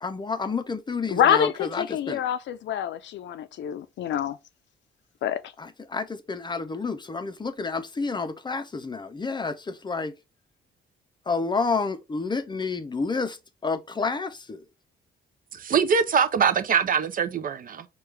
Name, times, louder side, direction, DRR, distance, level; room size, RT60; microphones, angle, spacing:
voice 1, 0.0-2.2 5.6-10.1 11.3-13.4 13.6-14.6, left 4 dB, 20° left, 0.6 m, -29 dB
voice 2, 1.1-4.4 5.2-5.4, left 9 dB, 65° left, 0.5 m, -26 dB
voice 3, 15.5-17.9, right 6 dB, 45° right, 0.5 m, -23 dB
4.8 x 2.3 x 3.3 m
cardioid pair, 90°, 20 cm